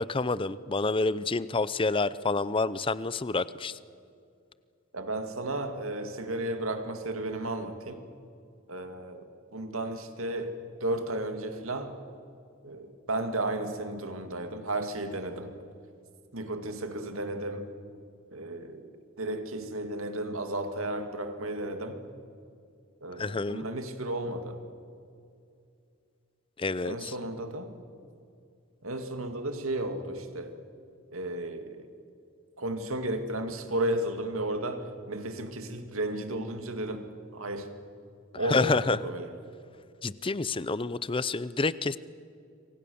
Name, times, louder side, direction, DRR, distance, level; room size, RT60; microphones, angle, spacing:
voice 1, 0.0-3.8 23.2-23.6 26.6-27.1 38.4-39.0 40.0-42.0, left 3 dB, 25° left, 17 dB, 0.6 m, -28 dB
voice 2, 4.9-8.0 8.7-12.0 12.6-15.6 16.3-17.7 18.3-22.0 23.0-24.6 26.8-27.8 28.8-30.5 31.1-31.9 32.6-37.7 38.4-39.3, right 1 dB, 90° right, 7 dB, 2.3 m, -34 dB
27.0 x 24.5 x 7.0 m, 2.4 s
head